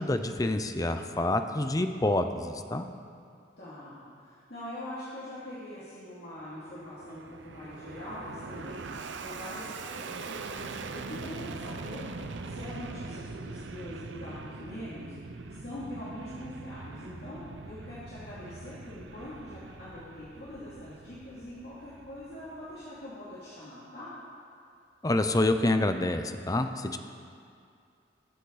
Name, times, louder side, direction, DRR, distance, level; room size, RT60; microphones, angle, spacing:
voice 1, 0.0-2.8 25.0-27.0, left 2 dB, 20° left, 8 dB, 0.6 m, -27 dB
voice 2, 3.6-12.0 12.4-15.1 15.5-24.1, left 1 dB, 60° left, -11 dB, 2.6 m, -43 dB
Fixed-wing aircraft airplane, 6.5-23.1, right 3 dB, 80° right, 0.6 m, -42 dB
20.5 x 8.1 x 4.1 m, 2.3 s
head